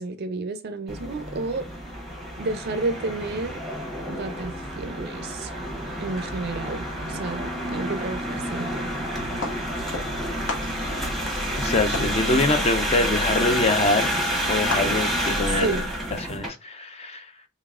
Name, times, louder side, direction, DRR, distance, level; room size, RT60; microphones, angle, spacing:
voice 1, 0.0-1.7 2.4-3.6 4.1-5.5 6.0-8.9 15.4-15.9, right 3 dB, 50° right, 0.4 m, -31 dB
sound 1, 0.9-16.5, equal, ahead, 0.9 m, -29 dB
sound 2, 9.4-10.2 10.5-15.3, left 3 dB, 60° left, 1.1 m, -36 dB
voice 2, 11.6-14.1 14.5-15.7 16.2-17.3, left 2 dB, 30° left, 0.6 m, -24 dB
3.8 x 3.2 x 2.4 m
head